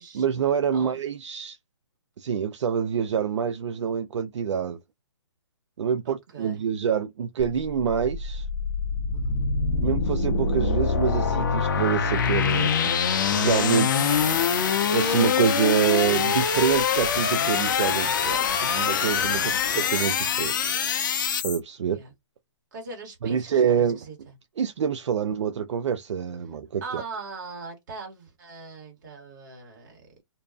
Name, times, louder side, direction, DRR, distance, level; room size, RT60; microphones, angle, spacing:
voice 1, 0.1-1.6 2.2-4.8 5.8-8.4 9.8-12.9 13.3-14.1 14.9-20.5 21.4-22.0 23.2-24.0 24.6-27.0, right 7 dB, 70° right, 0.4 m, -26 dB
voice 2, 6.0-6.6 9.1-9.5 13.8-14.7 19.3-19.7 21.9-22.1 22.7-24.2 26.8-30.1, right 4 dB, 40° right, 1.4 m, -40 dB
sound 1, 7.4-21.6, left 6 dB, 40° left, 0.5 m, -24 dB
2.6 x 2.2 x 2.3 m
hypercardioid pair, 160°, 16 cm